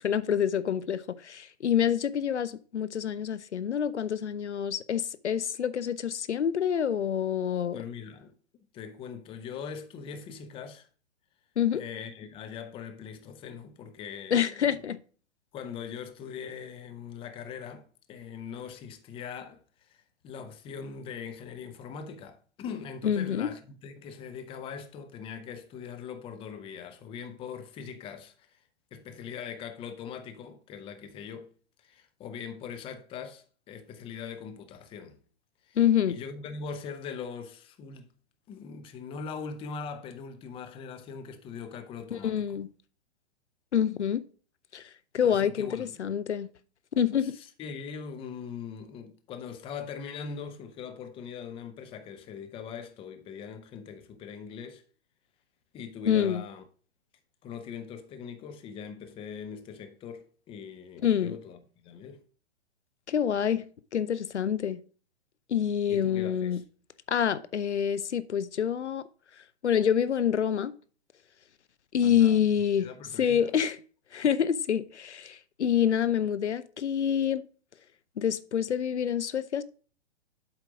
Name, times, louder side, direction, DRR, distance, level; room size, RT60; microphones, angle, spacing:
voice 1, 0.0-7.8 11.6-11.8 14.3-15.0 23.0-23.5 35.8-36.2 42.1-42.7 43.7-44.2 44.7-46.5 47.0-47.3 56.1-56.4 61.0-61.4 63.1-64.8 65.5-66.6 67.1-69.0 69.6-70.7 71.9-72.9 73.2-73.8 74.1-77.4 78.2-79.6, left 9 dB, 85° left, 0.6 m, -27 dB
voice 2, 7.7-8.4 8.7-10.9 11.7-14.8 15.5-28.6 28.9-31.5 31.8-35.2 35.6-35.8 36.1-38.1 38.5-42.6 45.2-46.3 47.2-54.8 55.7-56.6 57.4-62.2 65.9-66.6 72.0-72.4 72.8-73.5, left 6 dB, 15° left, 0.7 m, -41 dB
7.8 x 4.5 x 4.8 m
figure-of-eight pair, 120°, 33 cm